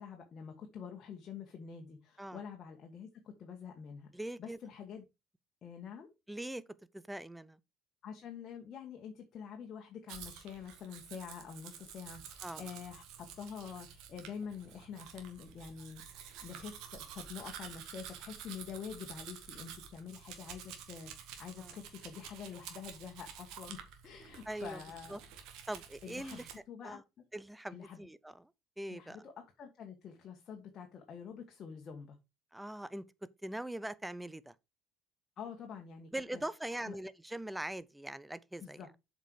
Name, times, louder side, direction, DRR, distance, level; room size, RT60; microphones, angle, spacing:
voice 1, 0.0-4.1 4.4-5.0 5.6-6.1 8.0-23.8 24.0-25.2 26.0-27.0 27.7-28.1 28.9-32.2 35.4-36.4 36.7-36.9 38.6-38.9, left 7 dB, 50° left, 1.6 m, -47 dB
voice 2, 4.1-4.6 6.3-6.6 6.9-7.6 12.4-12.7 21.6-21.8 24.5-24.8 25.1-25.2 25.7-26.5 26.8-27.0 27.3-28.5 28.8-29.2 32.5-33.0 33.4-34.5 36.1-38.8, right 1 dB, 5° right, 0.7 m, -42 dB
Domestic sounds home sounds, 10.1-26.6, right 8 dB, 65° right, 1.7 m, -50 dB
7.4 x 5.3 x 4.6 m
hypercardioid pair, 60°, 0 cm